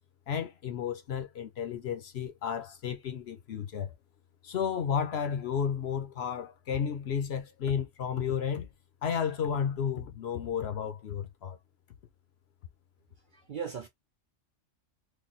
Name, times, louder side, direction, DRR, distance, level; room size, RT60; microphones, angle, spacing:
voice 1, 0.3-3.9 4.4-8.7 9.0-11.6, left 7 dB, 60° left, 0.9 m, -32 dB
voice 2, 13.3-13.9, right 7 dB, 55° right, 0.6 m, -37 dB
3.2 x 2.2 x 3.9 m
omnidirectional pair, 1.3 m